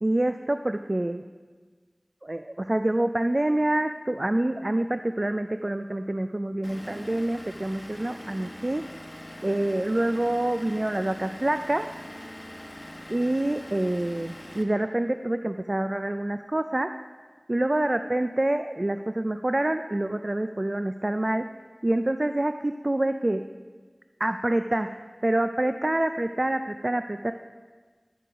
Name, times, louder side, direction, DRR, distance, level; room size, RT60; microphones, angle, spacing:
voice 1, 0.0-1.2 2.2-8.8 9.4-11.9 13.1-16.9 17.5-21.4 21.8-23.4 24.2-24.9 25.2-27.3, right 1 dB, 50° right, 8 dB, 0.3 m, -26 dB
Vehicle / Engine, 6.6-14.6, left 1 dB, 35° left, 1.1 m, -42 dB
11.0 x 6.9 x 4.9 m, 1.4 s
wide cardioid pair, 45°, 0 cm